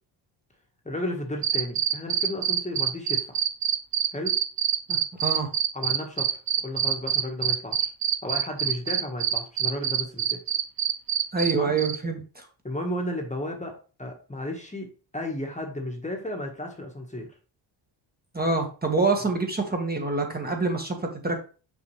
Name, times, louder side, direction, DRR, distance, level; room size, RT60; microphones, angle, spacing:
voice 1, 0.8-3.4 4.1-4.4 5.7-7.9 8.2-10.4 11.6-11.7 12.6-17.3, left 1 dB, 15° left, 1 dB, 1.5 m, -33 dB
sound 1, 1.4-11.5 11.8-12.0, right 9 dB, 50° right, 0.8 m, -25 dB
voice 2, 4.9-5.5 11.3-12.5 18.3-21.5, right 3 dB, 20° right, 2 dB, 1.6 m, -26 dB
6.2 x 5.6 x 3.3 m, 0.36 s
cardioid pair, 95°, 47 cm